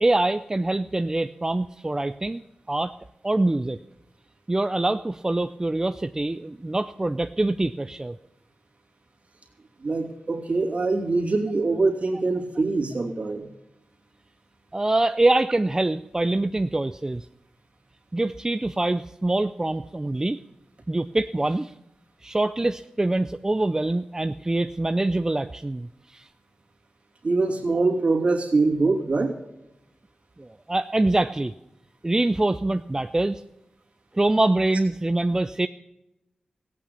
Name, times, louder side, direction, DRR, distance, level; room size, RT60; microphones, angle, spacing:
voice 1, 0.0-2.4 2.7-2.9 3.2-3.8 4.5-8.2 14.7-17.2 18.1-20.4 20.9-21.7 22.2-26.3 30.4-31.5 32.0-33.4 34.1-35.7, right 2 dB, 25° right, 10 dB, 0.5 m, -24 dB
voice 2, 9.8-13.5 27.2-29.4, right 3 dB, 55° right, 0 dB, 2.9 m, -23 dB
16.0 x 8.7 x 6.9 m, 0.92 s
cardioid pair, 45°, 3 cm